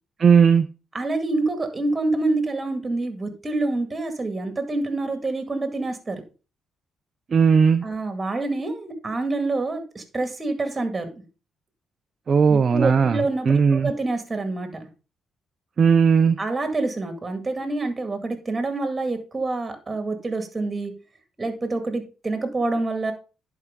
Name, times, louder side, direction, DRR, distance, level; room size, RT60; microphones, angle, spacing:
voice 1, 0.2-0.7 7.3-7.8 12.3-13.2 13.5-13.9 15.8-16.4, right 6 dB, 45° right, 7 dB, 0.6 m, -17 dB
voice 2, 0.9-6.2 7.8-11.2 12.5-14.9 16.4-20.9 21.4-23.1, right 2 dB, 25° right, 7 dB, 2.1 m, -27 dB
10.5 x 4.8 x 3.7 m, 0.32 s
cardioid pair, 90°, 0 cm